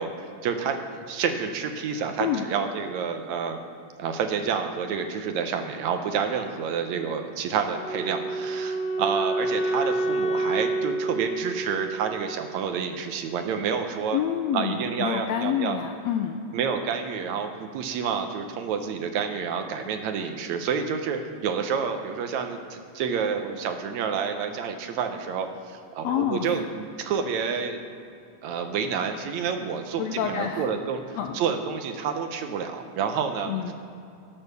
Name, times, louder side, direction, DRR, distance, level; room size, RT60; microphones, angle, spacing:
voice 1, 0.0-3.6 4.0-14.2 14.5-15.8 16.5-27.8 28.4-33.5, right 6 dB, 75° right, 6 dB, 2.0 m, -29 dB
Wind instrument woodwind instrument, 7.7-12.8, right 2 dB, 65° left, 1.2 m, -28 dB
voice 2, 14.1-16.4 26.0-26.6 30.0-30.7 31.2-31.4 33.5-33.7, left 9 dB, 80° left, 5 dB, 1.5 m, -28 dB
16.0 x 6.4 x 6.8 m, 2.6 s
omnidirectional pair, 3.6 m